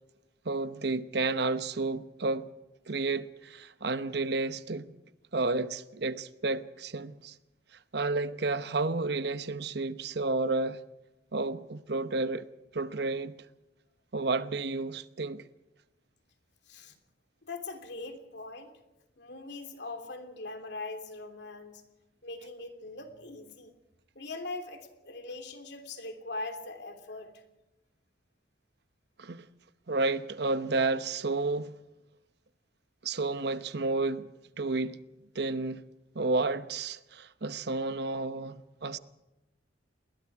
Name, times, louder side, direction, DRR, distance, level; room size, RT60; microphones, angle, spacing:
voice 1, 0.4-2.5 2.9-4.9 5.3-7.3 7.9-10.8 11.3-12.5 12.7-13.3 14.1-15.4 29.2-29.5 29.9-31.7 33.0-34.3 34.6-35.0 35.3-35.8 36.1-39.0, right 3 dB, 60° right, 0.9 m, -31 dB
voice 2, 17.4-18.8 19.2-21.8 22.2-23.8 24.1-27.3, left 3 dB, 65° left, 3.1 m, -41 dB
29.0 x 21.0 x 4.8 m
head